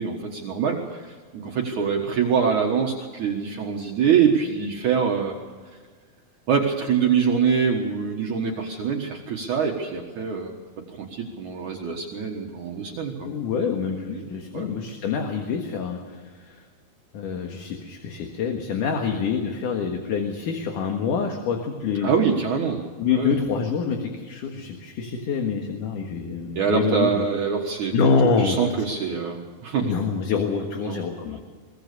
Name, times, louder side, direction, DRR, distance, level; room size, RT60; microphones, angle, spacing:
voice 1, 0.0-5.4 6.5-10.5 11.0-13.3 13.5-13.7 14.1-14.3 14.5-14.7 22.0-22.8 23.1-23.4 26.6-27.9 28.4-29.9 30.8-31.0, right 6 dB, 60° right, 1 dB, 2.6 m, -24 dB
voice 2, 13.2-16.6 17.1-22.1 23.0-27.3 27.9-28.6 29.8-31.4, left 5 dB, 65° left, 3 dB, 2.9 m, -26 dB
23.0 x 18.5 x 6.8 m, 1.5 s
omnidirectional pair, 4.4 m